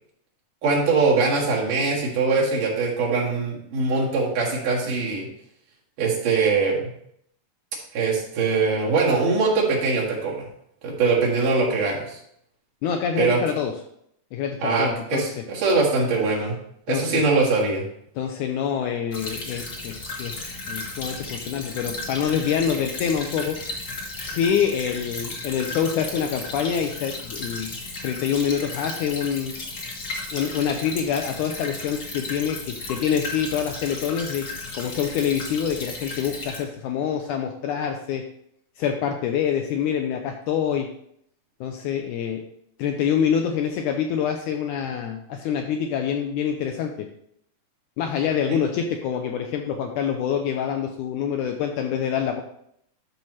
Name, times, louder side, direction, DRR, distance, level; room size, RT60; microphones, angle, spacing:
voice 1, 0.6-5.3 6.0-6.8 7.9-10.4 10.8-12.2 13.2-13.4 14.6-16.6 16.9-17.8, right 4 dB, 65° right, -4 dB, 3.4 m, -22 dB
voice 2, 12.8-13.7 14.3-15.3 16.9-17.2 18.2-23.6 24.2-27.7 28.0-29.5 30.3-34.5 34.7-38.2 38.8-40.9 41.6-42.4 42.8-46.9 48.0-52.4, left 8 dB, 80° left, 4 dB, 1.8 m, -26 dB
Stream / Trickle dribble, 19.1-36.6, left 3 dB, 55° left, 1.1 m, -35 dB
11.5 x 5.9 x 3.1 m, 0.71 s
omnidirectional pair, 4.1 m